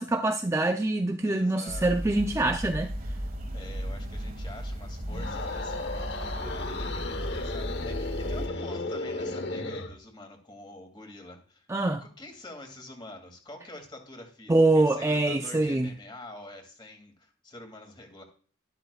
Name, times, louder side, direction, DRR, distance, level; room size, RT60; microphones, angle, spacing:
voice 1, 0.0-2.9 11.7-12.0 14.5-15.9, right 2 dB, 15° right, 0.4 m, -24 dB
voice 2, 1.3-1.9 3.5-11.7 12.0-18.2, left 2 dB, 25° left, 2.4 m, -46 dB
sound 1, 1.7-8.5, equal, 50° right, 1.6 m, -35 dB
sound 2, 5.0-10.0, left 2 dB, 60° left, 1.1 m, -34 dB
12.5 x 12.0 x 2.4 m
head